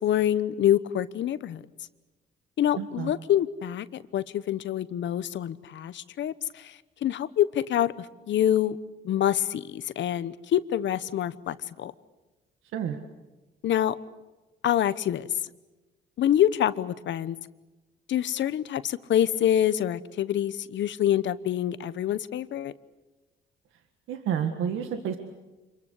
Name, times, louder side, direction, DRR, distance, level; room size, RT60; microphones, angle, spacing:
voice 1, 0.0-1.6 2.6-8.8 9.0-11.9 13.6-14.0 14.6-15.3 16.2-17.4 18.1-22.7, left 11 dB, 70° left, 15 dB, 1.0 m, -26 dB
voice 2, 2.8-3.1 12.7-13.0 24.1-25.2, right 8 dB, 85° right, 6 dB, 1.8 m, -29 dB
27.0 x 22.5 x 8.3 m, 1.1 s
cardioid pair, 90°, 20 cm